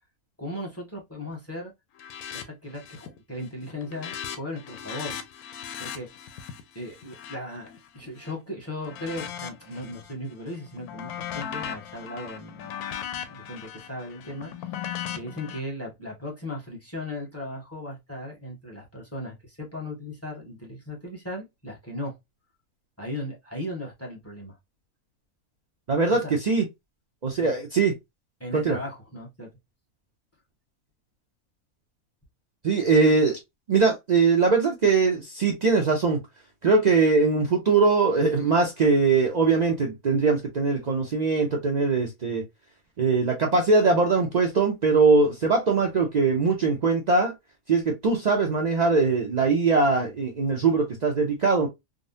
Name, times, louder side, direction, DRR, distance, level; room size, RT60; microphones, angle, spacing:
voice 1, 0.4-1.7 2.3-5.2 5.8-12.8 13.1-14.8 15.1-22.1 23.0-24.6 26.1-26.3 27.4-27.5 28.4-29.5, left 1 dB, 10° left, 0.9 m, -37 dB
sound 1, 2.0-2.4 2.7-3.2 3.5-8.3 8.8-10.1 10.5-15.6, left 9 dB, 85° left, 1.1 m, -38 dB
voice 2, 25.9-26.6 27.2-27.9 28.5-28.8 32.6-33.4 33.7-36.2 36.6-42.4 43.0-47.3 47.7-51.7, right 4 dB, 75° right, 0.4 m, -21 dB
3.7 x 2.0 x 2.5 m
omnidirectional pair, 1.5 m